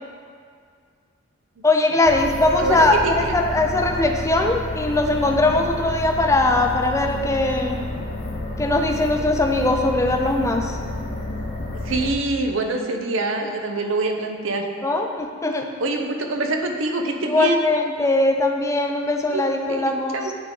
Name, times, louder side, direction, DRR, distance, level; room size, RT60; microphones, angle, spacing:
voice 1, 1.6-7.8 8.6-10.8 14.8-15.7 17.2-20.2, left 2 dB, 15° left, 3 dB, 0.4 m, -20 dB
sound 1, 2.1-12.1, left 2 dB, 40° left, 0.8 m, -30 dB
voice 2, 2.6-3.3 11.8-14.7 15.8-17.6 19.3-20.3, right 2 dB, 70° right, 4 dB, 0.6 m, -25 dB
9.2 x 3.6 x 3.8 m, 2.1 s
head